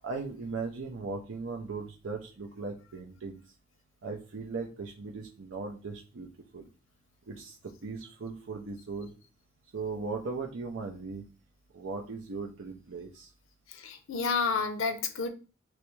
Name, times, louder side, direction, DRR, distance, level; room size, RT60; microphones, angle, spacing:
voice 1, 0.0-3.4 4.0-6.7 7.3-9.1 9.7-11.3 11.7-13.3, right 4 dB, 80° right, 0.6 m, -38 dB
voice 2, 13.7-15.3, left 5 dB, 85° left, 0.6 m, -30 dB
3.3 x 3.1 x 3.1 m
head